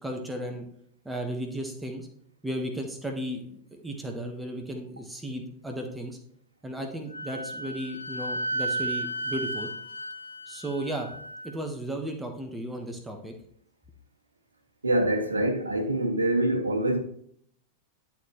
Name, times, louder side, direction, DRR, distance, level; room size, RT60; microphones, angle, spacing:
voice 1, 0.0-0.7 1.0-2.1 2.4-6.2 6.6-9.7 10.5-11.1 11.4-13.3, right 1 dB, 10° right, 1.3 m, -35 dB
Wind instrument woodwind instrument, 7.1-11.5, right 1 dB, 80° left, 0.4 m, -34 dB
voice 2, 14.8-17.0, right 1 dB, 80° right, 1.1 m, -25 dB
11.5 x 4.4 x 3.1 m
figure-of-eight pair, 90°, 0 cm